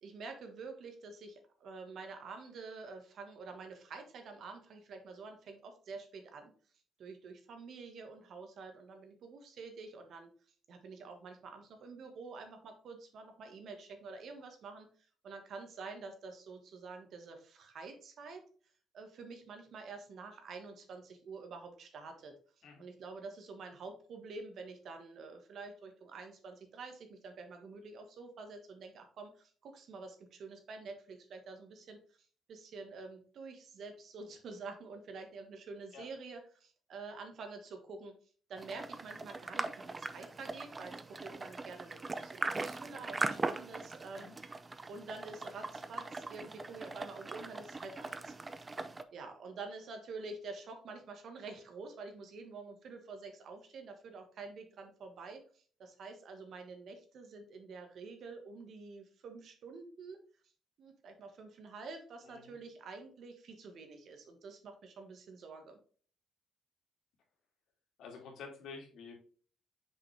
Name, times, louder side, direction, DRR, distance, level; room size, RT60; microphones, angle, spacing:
voice 1, 0.0-6.5 7.0-10.3 10.7-14.9 15.2-18.4 18.9-22.3 22.8-32.0 32.5-38.2 38.5-44.3 44.9-48.3 49.1-60.2 60.8-65.8, right 4 dB, 65° right, 5 dB, 1.5 m, -48 dB
sound 1, 38.6-49.0, right 3 dB, 25° right, 0.5 m, -40 dB
voice 2, 62.2-62.6 68.0-69.1, left 5 dB, 80° left, 1 dB, 2.3 m, -49 dB
6.3 x 5.1 x 3.4 m, 0.43 s
cardioid pair, 95°, 0 cm